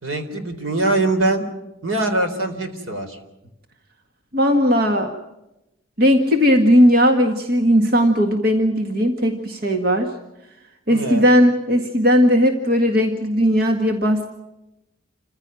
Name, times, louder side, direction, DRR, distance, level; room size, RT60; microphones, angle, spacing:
voice 1, 0.0-1.4 1.8-3.2 10.9-11.3, right 2 dB, 80° right, 7 dB, 3.7 m, -22 dB
voice 2, 4.3-5.1 6.0-10.1 10.9-14.3, equal, 50° right, 4 dB, 1.8 m, -17 dB
28.5 x 15.5 x 9.1 m, 0.93 s
head